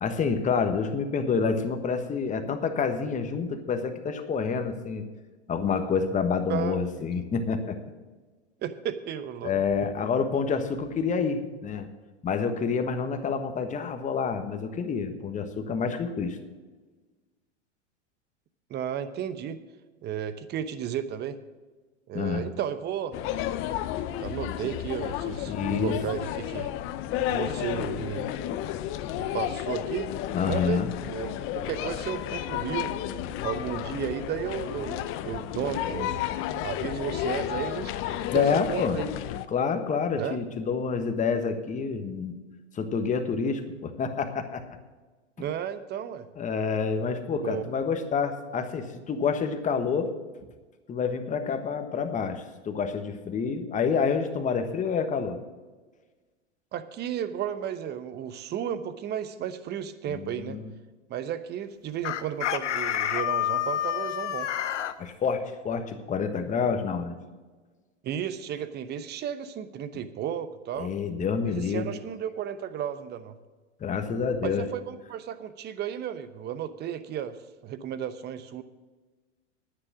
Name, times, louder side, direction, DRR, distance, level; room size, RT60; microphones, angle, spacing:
voice 1, 0.0-5.0 5.5-7.8 9.4-11.9 12.2-16.4 22.1-22.5 25.4-26.0 30.3-30.9 38.3-39.0 39.5-42.4 42.7-44.6 46.4-50.1 50.9-55.4 60.1-60.7 65.0-67.2 70.8-71.8 73.8-74.7, left 5 dB, 20° left, 7 dB, 1.3 m, -28 dB
voice 2, 6.5-7.2 8.6-9.5 9.8-9.9 18.7-19.6 20.0-21.4 22.1-23.2 24.2-26.7 27.3-28.3 29.1-30.1 30.5-33.0 33.4-36.2 36.6-39.1 40.1-40.4 45.4-46.3 47.4-47.6 56.7-60.6 61.1-64.5 68.0-70.9 71.4-73.4 74.4-77.4 77.6-78.6, right 9 dB, 30° right, 12 dB, 0.9 m, -33 dB
sound 1, 23.1-39.5, left 12 dB, 35° left, 0.7 m, -32 dB
Chicken rooster, 62.0-64.9, left 11 dB, 80° left, 0.9 m, -28 dB
10.0 x 9.7 x 6.2 m, 1.3 s
hypercardioid pair, 110°, 35 cm